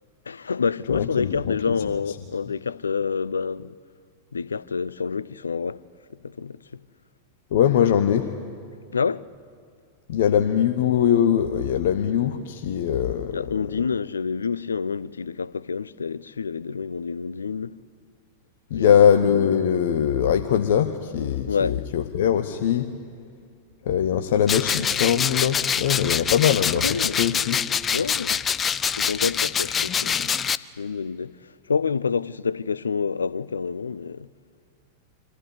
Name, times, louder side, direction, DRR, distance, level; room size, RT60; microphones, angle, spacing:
voice 1, 0.3-3.7 4.3-5.8 6.2-6.8 8.9-9.2 13.3-17.8 18.7-19.0 21.5-21.8 25.7-26.2 26.8-27.2 27.9-28.4 29.0-30.3 30.8-34.3, left 5 dB, 75° left, 0.5 m, -28 dB
voice 2, 0.9-1.7 7.5-8.3 10.1-13.4 18.7-22.9 23.8-27.6, left 9 dB, 55° left, 1.0 m, -21 dB
sound 1, 24.5-30.6, left 7 dB, 20° left, 0.5 m, -25 dB
24.5 x 15.0 x 9.8 m
figure-of-eight pair, 90°, 0 cm